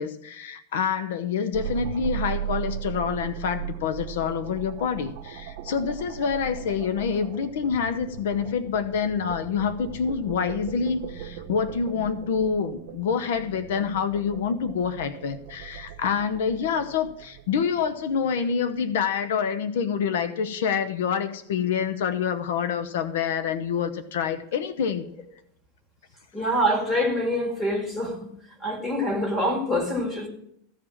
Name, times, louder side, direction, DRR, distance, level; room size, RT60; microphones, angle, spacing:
voice 1, 0.0-25.1, left 6 dB, 80° left, 0.9 m, -27 dB
sound 1, 1.5-18.8, right 11 dB, 55° right, 1.1 m, -38 dB
voice 2, 26.3-28.3 28.6-30.3, equal, 10° left, 2.1 m, -25 dB
15.0 x 5.0 x 7.2 m
supercardioid pair, 165°, 0 cm